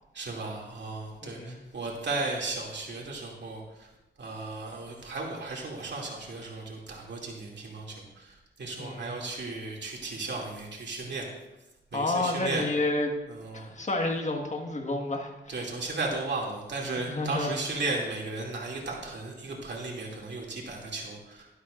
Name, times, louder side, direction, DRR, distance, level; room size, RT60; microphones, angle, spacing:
voice 1, 0.1-3.6 4.2-11.3 11.9-12.6 13.3-13.7 15.5-21.5, right 3 dB, 60° right, -2 dB, 2.6 m, -35 dB
voice 2, 8.8-9.2 11.9-13.1 13.5-15.6 17.1-17.5, left 2 dB, 35° left, 2 dB, 1.6 m, -30 dB
12.0 x 12.0 x 2.5 m, 0.99 s
cardioid pair, 80°, 20 cm